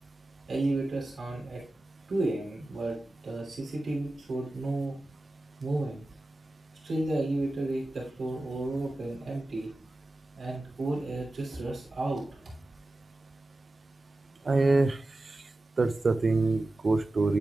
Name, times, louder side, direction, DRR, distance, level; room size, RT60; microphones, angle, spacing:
voice 1, 0.5-1.6 2.1-5.0 5.6-6.0 6.8-9.7 10.3-12.4, right 2 dB, 80° right, -2 dB, 3.0 m, -32 dB
voice 2, 14.5-15.0 15.8-17.4, right 3 dB, 55° right, 12 dB, 0.6 m, -24 dB
9.0 x 8.6 x 2.4 m, 0.44 s
cardioid pair, 70°, 0 cm